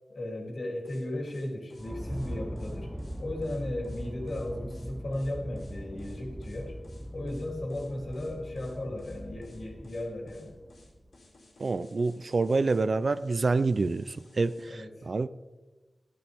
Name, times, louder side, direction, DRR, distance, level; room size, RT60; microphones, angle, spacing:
voice 1, 0.1-2.9 3.2-6.7 7.1-10.5 14.7-15.1, left 1 dB, 65° left, 0 dB, 2.9 m, -36 dB
sound 1, 0.8-14.7, left 2 dB, 90° left, 3.5 m, -59 dB
sound 2, 1.7-11.4, equal, 10° right, 0.9 m, -41 dB
voice 2, 11.6-15.3, right 3 dB, 50° right, 14 dB, 0.4 m, -27 dB
14.5 x 12.5 x 3.5 m, 1.2 s
wide cardioid pair, 120°, 0 cm